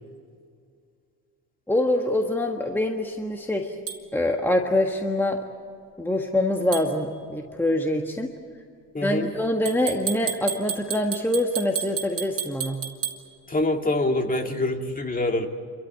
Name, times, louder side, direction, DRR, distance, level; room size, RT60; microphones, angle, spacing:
voice 1, 1.7-3.7 4.1-5.4 6.0-8.3 9.0-12.8, left 1 dB, 5° left, 3 dB, 1.6 m, -25 dB
sound 1, 3.9-4.0 6.7-6.9 9.7-13.2, right 8 dB, 40° right, 2.7 m, -31 dB
voice 2, 8.9-9.3 13.5-15.5, left 2 dB, 25° left, 4 dB, 2.1 m, -25 dB
28.0 x 14.0 x 9.4 m, 2.3 s
cardioid pair, 90°, 36 cm